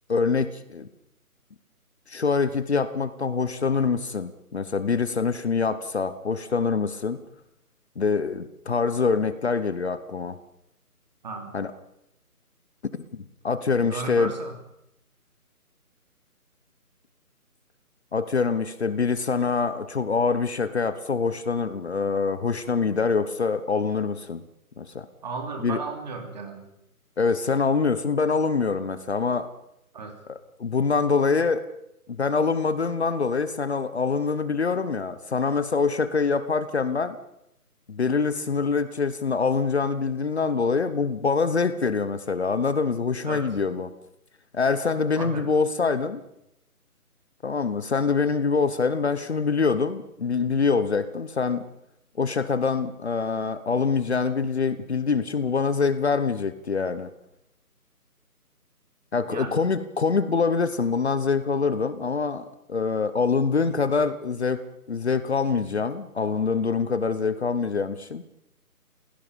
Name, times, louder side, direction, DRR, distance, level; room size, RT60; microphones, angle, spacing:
voice 1, 0.1-0.9 2.1-7.2 8.0-10.4 11.5-11.7 13.1-14.3 18.1-24.4 24.8-25.1 25.6-25.8 27.2-29.5 30.3-31.6 32.1-37.2 37.9-43.9 44.5-46.2 47.4-51.6 52.2-57.1 59.1-64.6 64.9-68.2, left 5 dB, 45° left, 13 dB, 1.2 m, -25 dB
voice 2, 11.2-11.5 13.9-14.5 25.2-26.7 29.9-30.2 43.2-43.5 45.2-45.5 59.3-59.6, right 4 dB, 30° right, 4 dB, 3.1 m, -35 dB
29.5 x 17.0 x 5.4 m, 0.81 s
figure-of-eight pair, 165°, 46 cm